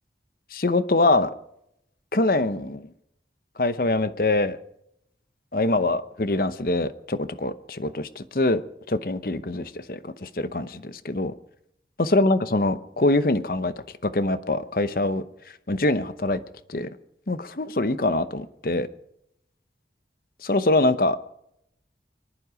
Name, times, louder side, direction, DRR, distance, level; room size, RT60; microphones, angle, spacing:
voice 1, 0.5-1.3 2.1-2.9 3.6-4.6 5.5-8.6 8.9-11.3 12.0-13.7 14.0-15.2 15.7-16.4 16.7-16.9 17.3-18.9 20.4-21.2, left 2 dB, 55° left, 0.8 m, -24 dB
24.0 x 11.0 x 5.1 m
head